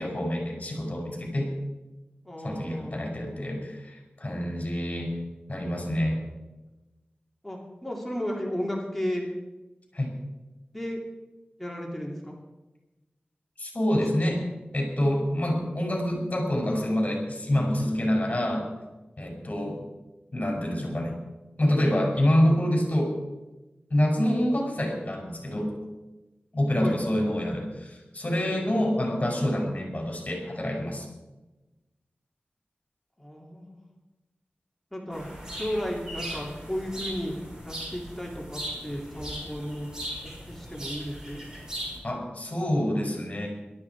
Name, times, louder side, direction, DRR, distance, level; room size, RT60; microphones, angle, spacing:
voice 1, 0.0-1.5 2.4-5.1 5.5-6.2 9.9-10.1 13.6-14.4 14.7-18.7 19.2-19.8 20.3-21.1 21.6-23.1 23.9-25.7 26.5-31.1 42.0-43.5, left 1 dB, 40° left, 0 dB, 6.2 m, -26 dB
voice 2, 2.2-3.2 7.4-9.3 10.7-11.0 11.6-12.3 13.9-14.4 26.8-27.0 28.4-28.9 33.2-33.8 34.9-35.2 35.5-37.3 37.6-39.9 40.2-41.4, equal, 5° left, -2 dB, 2.9 m, -34 dB
sound 1, 35.1-42.0, equal, 20° right, 6.3 m, -38 dB
18.0 x 13.0 x 4.8 m, 1.1 s
wide cardioid pair, 75°, 4 cm